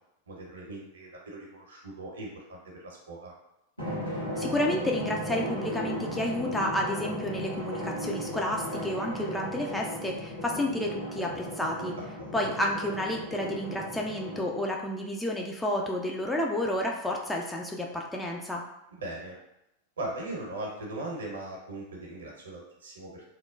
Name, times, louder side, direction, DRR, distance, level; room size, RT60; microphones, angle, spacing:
voice 1, 0.3-3.3 11.9-12.5 19.0-19.3 20.0-23.2, right 2 dB, 70° right, -2 dB, 0.8 m, -39 dB
Drum, 3.8-14.8, equal, 85° left, 1.1 m, -36 dB
voice 2, 4.4-12.0 12.3-18.6, left 1 dB, 5° left, -1 dB, 0.3 m, -30 dB
3.0 x 2.1 x 2.3 m, 0.87 s
figure-of-eight pair, 90°, 0 cm